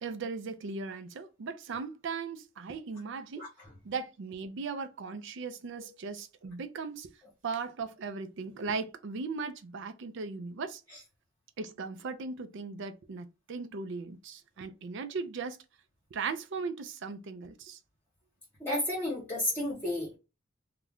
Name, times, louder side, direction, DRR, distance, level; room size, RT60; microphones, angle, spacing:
voice 1, 0.0-3.5 3.8-7.1 7.4-10.8 11.6-15.6 16.1-17.8, right 4 dB, 60° right, 0.4 m, -38 dB
voice 2, 18.6-20.2, left 1 dB, 10° left, 0.9 m, -32 dB
2.4 x 2.1 x 3.5 m
head